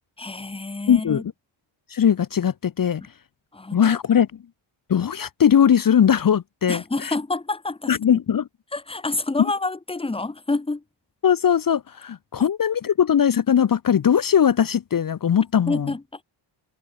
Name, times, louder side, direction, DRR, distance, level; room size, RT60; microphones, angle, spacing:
voice 1, 0.2-1.2 3.5-4.0 6.7-8.0 8.7-10.8 15.7-16.2, left 3 dB, 10° left, 1.1 m, -28 dB
voice 2, 0.9-1.2 1.9-3.0 3.7-4.3 4.9-7.1 7.9-8.4 11.2-15.9, left 8 dB, 45° left, 1.0 m, -20 dB
wide cardioid pair, 165°, 48 cm